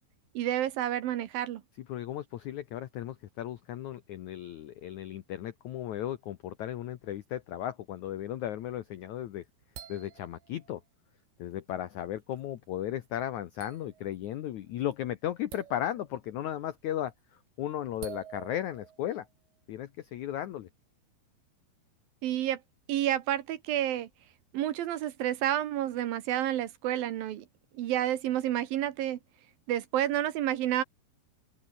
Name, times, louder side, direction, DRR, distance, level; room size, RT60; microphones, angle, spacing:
voice 1, 0.3-1.6 22.2-22.6 22.9-24.1 24.5-27.5 27.7-29.2 29.7-30.8, right 12 dB, 70° right, 2.7 m, -29 dB
voice 2, 1.8-9.4 9.9-10.8 11.4-17.1 17.6-19.3 19.7-20.7, left 11 dB, 90° left, 1.6 m, -35 dB
sound 1, 9.1-10.8 11.4-11.6 12.0-12.7 13.2-13.3 13.6-14.3 14.5-14.9 15.5-16.3 16.9-17.2 18.0-19.3, right 10 dB, 85° right, 4.8 m, -48 dB
open air
omnidirectional pair, 4.9 m